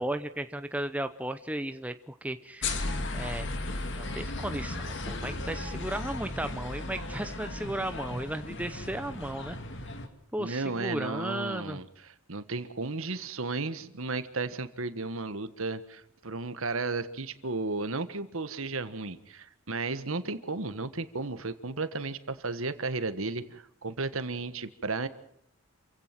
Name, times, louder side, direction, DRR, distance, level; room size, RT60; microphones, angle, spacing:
voice 1, 0.0-2.8 3.1-3.5 4.0-9.6 10.3-11.8, right 1 dB, 5° right, 9 dB, 0.7 m, -35 dB
sound 1, 2.6-10.1, left 2 dB, 55° left, 2.4 m, -35 dB
voice 2, 10.4-25.1, right 3 dB, 70° right, 12 dB, 1.5 m, -34 dB
28.0 x 16.5 x 6.0 m, 0.75 s
head